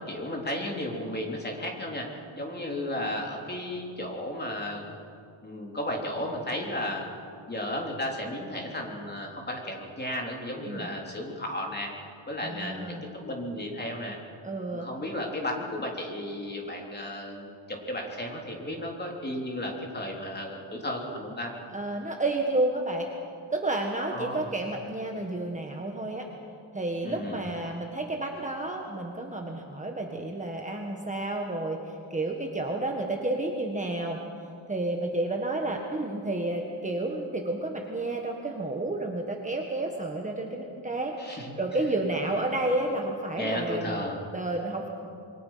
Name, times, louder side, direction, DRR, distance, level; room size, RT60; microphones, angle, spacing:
voice 1, 0.1-2.1 2.4-4.9 5.4-7.1 7.5-11.9 12.3-14.2 14.7-21.5 24.1-24.5 27.0-27.4 41.2-41.6 43.4-44.2, left 1 dB, 20° left, 0 dB, 3.5 m, -34 dB
voice 2, 12.4-13.0 14.4-14.9 21.7-23.1 23.5-26.3 26.7-31.8 32.1-34.2 34.7-44.0 44.3-44.9, right 2 dB, 15° right, 1 dB, 1.6 m, -31 dB
27.0 x 23.5 x 5.8 m, 2.5 s
wide cardioid pair, 165°, 48 cm